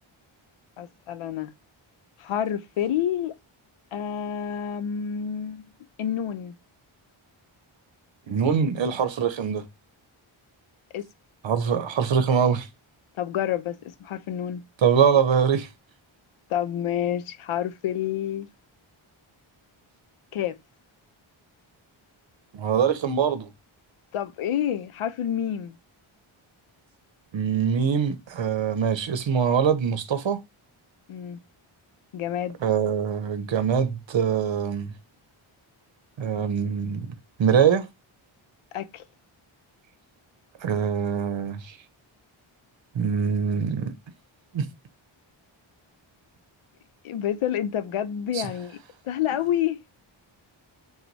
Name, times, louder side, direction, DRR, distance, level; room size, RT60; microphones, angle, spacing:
voice 1, 0.8-1.5 2.2-3.3 3.9-5.7 6.0-6.6 10.9-11.1 13.2-14.6 16.5-18.5 20.3-20.6 24.1-25.8 31.1-31.4 32.1-32.6 38.7-39.0 47.0-48.8 49.0-49.8, left 10 dB, 80° left, 0.6 m, -28 dB
voice 2, 8.3-9.6 11.4-12.7 14.8-15.7 22.5-23.5 27.3-30.4 32.6-34.9 36.2-37.1 37.4-37.9 40.6-41.8 42.9-43.9 44.5-44.7 48.3-48.4, right 7 dB, 65° right, 0.8 m, -23 dB
3.9 x 2.2 x 4.5 m
wide cardioid pair, 90°, 49 cm